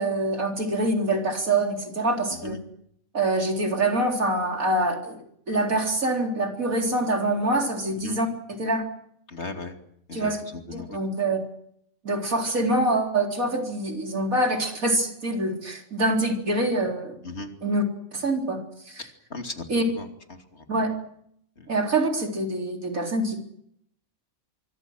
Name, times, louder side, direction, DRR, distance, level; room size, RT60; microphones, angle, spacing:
voice 1, 0.0-2.6 3.1-5.2 5.5-8.9 10.1-10.4 10.7-11.5 12.0-17.2 17.6-17.8 18.1-19.1 19.7-19.8 20.7-20.9 21.7-23.4, right 2 dB, 80° right, 3 dB, 4.3 m, -25 dB
voice 2, 9.3-9.7 10.1-10.3 10.7-11.0 17.2-17.5 19.0-19.6 20.0-20.1 21.6-21.7, left 3 dB, 50° left, 5 dB, 3.0 m, -36 dB
24.5 x 24.5 x 6.4 m, 0.71 s
omnidirectional pair, 1.4 m